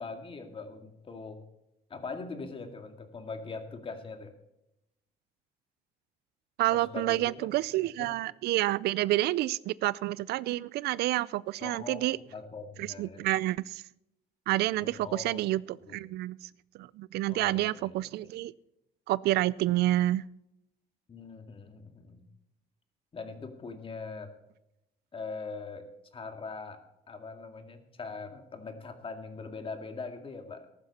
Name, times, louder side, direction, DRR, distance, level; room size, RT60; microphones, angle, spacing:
voice 1, 0.0-1.4 1.9-4.3 6.7-7.5 7.8-8.1 11.6-13.3 14.7-15.4 15.9-16.0 17.3-18.3 21.1-22.2 23.1-24.3 25.1-26.8 27.1-30.7, left 4 dB, 30° left, 6 dB, 2.1 m, -42 dB
voice 2, 6.6-12.2 12.8-13.8 14.5-16.5 16.7-18.5 19.1-20.2, right 16 dB, 75° right, 21 dB, 0.4 m, -29 dB
14.5 x 12.0 x 4.2 m, 0.86 s
cardioid pair, 110°, 17 cm